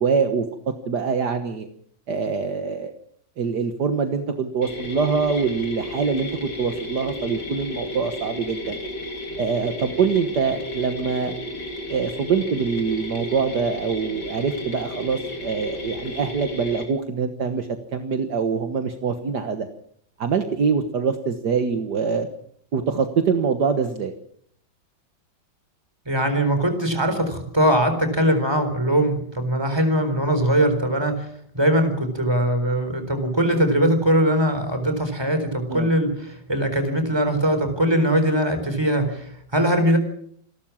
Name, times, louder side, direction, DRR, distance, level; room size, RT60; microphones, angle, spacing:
voice 1, 0.0-1.7 2.1-2.9 3.4-8.8 9.4-11.4 11.9-19.7 20.2-22.3 22.7-24.1 35.7-35.9, right 5 dB, 60° right, 7 dB, 1.9 m, -24 dB
sound 1, 4.6-16.8, left 1 dB, 60° left, 3.8 m, -33 dB
voice 2, 26.1-31.3 31.5-40.0, right 1 dB, 10° right, 7 dB, 4.2 m, -21 dB
28.0 x 12.5 x 7.3 m, 0.64 s
omnidirectional pair, 2.0 m